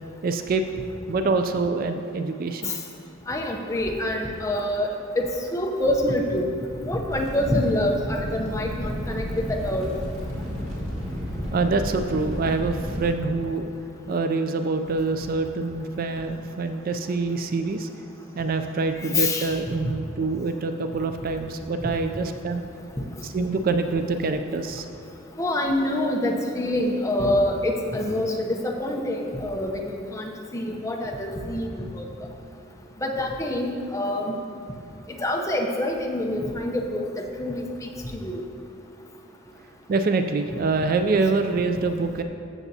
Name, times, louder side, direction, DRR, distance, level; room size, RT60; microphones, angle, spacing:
voice 1, 0.2-0.6 1.1-2.7 11.5-13.6 14.1-17.9 18.4-22.6 23.2-24.9 39.9-42.2, right 3 dB, 45° right, 7 dB, 0.3 m, -25 dB
voice 2, 3.3-4.9 5.2-9.9 19.1-19.6 23.0-23.1 25.4-32.0 33.0-34.4 35.2-38.4, left 1 dB, 15° left, 1 dB, 0.7 m, -26 dB
sound 1, 7.1-13.1, equal, 85° right, 2.1 m, -32 dB
14.0 x 7.0 x 2.8 m, 2.5 s
head